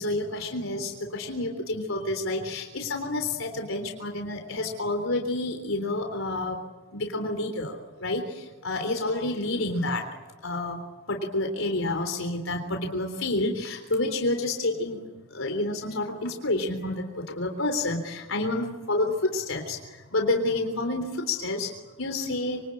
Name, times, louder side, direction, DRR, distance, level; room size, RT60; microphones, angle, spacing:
voice 1, 0.0-6.6 6.9-7.7 8.0-8.2 8.6-10.0 10.4-10.8 11.1-15.0 15.3-17.0 17.4-19.1 19.3-19.8 20.1-21.7 22.0-22.6, left 2 dB, 85° left, 3 dB, 3.7 m, -29 dB
27.0 x 24.5 x 8.7 m, 1.1 s
head